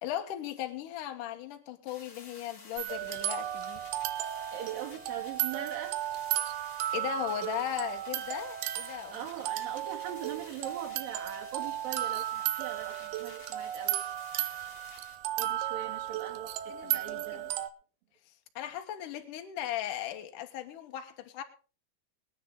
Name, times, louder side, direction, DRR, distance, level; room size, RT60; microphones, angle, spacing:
voice 1, 0.0-3.8 6.9-9.2 16.7-17.5 18.6-21.4, left 11 dB, 65° left, 5 dB, 2.6 m, -37 dB
sound 1, 1.9-15.2, left 4 dB, 40° left, 3.1 m, -53 dB
sound 2, 2.8-17.7, right 13 dB, 90° right, 2.7 m, -35 dB
voice 2, 4.5-6.0 9.1-14.0 15.4-17.5, right 9 dB, 70° right, 1 dB, 3.7 m, -41 dB
20.0 x 9.6 x 3.7 m, 0.38 s
omnidirectional pair, 4.4 m